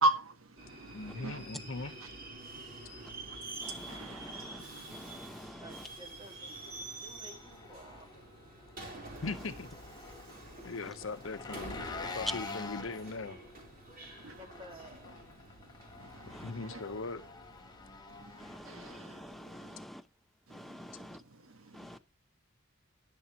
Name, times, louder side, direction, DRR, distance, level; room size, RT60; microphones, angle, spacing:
voice 1, 0.0-1.4 2.8-5.2 8.9-9.2 10.6-10.9 14.2-14.4 16.0-16.8 18.1-19.8 20.5-20.8 21.1-21.2 21.4-22.0, right 1 dB, 80° right, 1.6 m, -38 dB
Subway metro underground, 0.6-19.0, right 2 dB, 45° right, 3.6 m, -48 dB
voice 2, 0.9-1.9 9.2-9.7 10.6-12.4 12.8-13.4 16.2-17.2, left 3 dB, 65° left, 0.9 m, -40 dB
Engine, 3.6-19.4, left 3 dB, 20° left, 1.1 m, -48 dB
voice 3, 3.6-5.9 9.2-9.5 10.8-11.0 16.3-16.6 18.4-20.1 20.5-21.2 21.7-22.0, equal, ahead, 0.6 m, -48 dB
voice 4, 5.6-8.1 14.2-15.2, right 1 dB, 25° right, 1.9 m, -53 dB
12.5 x 9.9 x 2.9 m
head